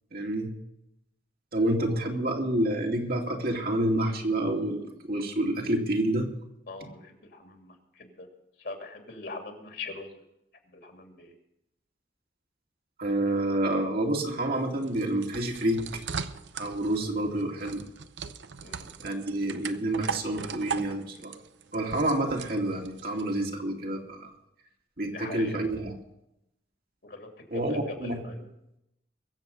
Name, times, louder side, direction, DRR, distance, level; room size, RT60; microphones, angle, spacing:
voice 1, 0.1-0.5 1.5-6.3 13.0-15.9 16.6-17.8 19.0-21.3 21.7-24.3 25.0-25.9 27.5-28.2, right 1 dB, 55° right, 0 dB, 2.6 m, -28 dB
voice 2, 1.8-2.1 6.7-8.3 8.6-10.2 10.6-11.3 18.6-18.9 25.1-25.7 27.0-28.4, left 3 dB, 60° left, 3 dB, 2.8 m, -41 dB
sound 1, 14.5-23.3, right 6 dB, 80° right, 0.8 m, -39 dB
23.0 x 7.8 x 5.5 m, 0.84 s
head